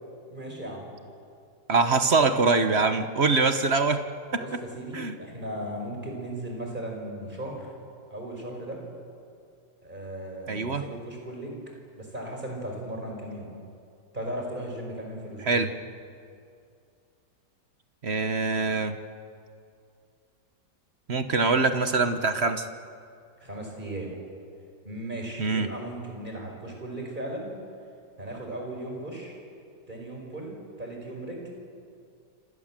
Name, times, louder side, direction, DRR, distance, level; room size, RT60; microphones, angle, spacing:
voice 1, 0.3-0.9 4.3-7.7 8.1-8.8 9.8-11.6 11.9-13.5 14.1-15.6 23.4-24.1 24.8-27.5 28.2-29.4 29.9-31.5, right 1 dB, 25° right, 1 dB, 5.5 m, -37 dB
voice 2, 1.7-4.0 4.3-4.4 4.9-5.2 10.5-10.9 15.4-15.7 18.0-19.0 21.1-22.7 25.4-25.7, right 4 dB, 40° right, 9 dB, 1.2 m, -23 dB
27.5 x 26.0 x 7.5 m, 2.4 s
omnidirectional pair, 1.9 m